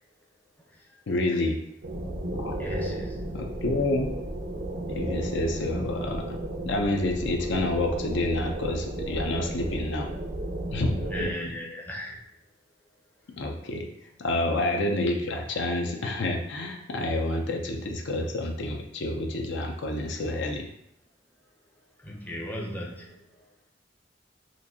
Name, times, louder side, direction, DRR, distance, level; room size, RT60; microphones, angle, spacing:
voice 1, 1.1-1.6 2.3-2.6 3.3-4.1 5.0-6.2 6.7-10.1 10.7-11.3 13.4-13.9 14.2-20.7, left 2 dB, 65° left, 2 dB, 0.5 m, -28 dB
sound 1, 1.8-11.3, right 1 dB, 55° right, 0.5 m, -33 dB
voice 2, 2.5-3.2 11.0-12.2 22.0-23.4, equal, 10° left, -2 dB, 0.6 m, -37 dB
4.3 x 2.6 x 2.7 m, 0.75 s
head